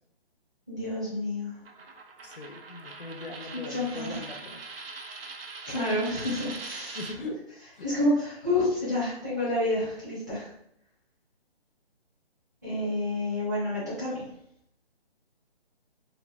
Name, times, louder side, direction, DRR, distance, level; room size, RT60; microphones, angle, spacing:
voice 1, 0.7-1.6 3.5-4.2 5.7-7.0 7.8-10.5 12.6-14.2, left 1 dB, 20° right, -11 dB, 0.8 m, -29 dB
Coin (dropping), 1.7-7.2, right 4 dB, 70° right, 0.5 m, -42 dB
voice 2, 2.2-4.6 7.0-7.4 7.7-7.9, left 2 dB, 60° left, 3 dB, 0.5 m, -40 dB
2.9 x 2.4 x 2.2 m, 0.72 s
hypercardioid pair, 180°, 31 cm